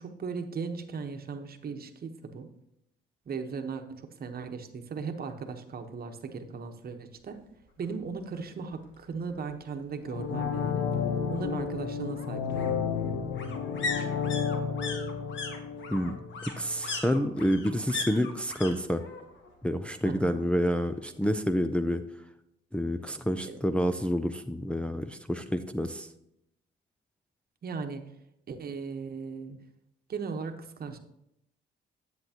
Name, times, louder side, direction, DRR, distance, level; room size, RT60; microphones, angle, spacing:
voice 1, 0.0-2.5 3.3-7.4 7.8-10.9 11.3-12.8 20.0-20.4 23.4-23.6 27.6-28.1 28.5-29.6 30.1-31.0, right 5 dB, 50° right, 6 dB, 1.1 m, -37 dB
sound 1, 7.8-7.9 8.3-8.4 8.6-9.6 10.9-18.7 19.0-19.6 19.8-20.9 21.2-21.3, left 4 dB, 70° left, 1.5 m, -39 dB
sound 2, 10.0-16.9 17.2-17.3, left 6 dB, 90° left, 0.9 m, -32 dB
voice 2, 16.6-19.0 19.6-22.0 22.7-26.1, equal, 5° left, 6 dB, 0.5 m, -28 dB
10.0 x 7.8 x 2.9 m, 0.80 s
cardioid pair, 90°, 20 cm